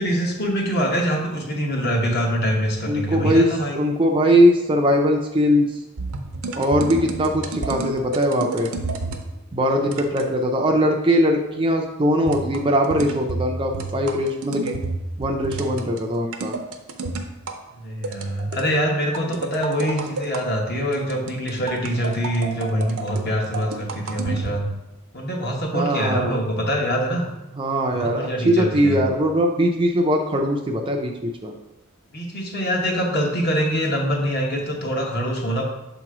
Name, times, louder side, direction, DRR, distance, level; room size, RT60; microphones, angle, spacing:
voice 1, 0.0-3.8 17.7-24.7 25.1-27.3 27.9-29.0 32.1-35.7, equal, 45° left, -1 dB, 1.1 m, -24 dB
voice 2, 2.9-3.5 3.7-5.7 6.5-8.7 9.5-14.8 15.2-16.6 25.7-26.4 27.6-31.5, equal, 25° right, 1 dB, 0.4 m, -20 dB
sound 1, 6.0-9.3 9.9-10.4 12.3-17.6 18.0-18.7 19.1-20.4 20.9-24.6, right 3 dB, 75° right, 0.6 m, -30 dB
6.7 x 3.0 x 4.8 m, 0.95 s
head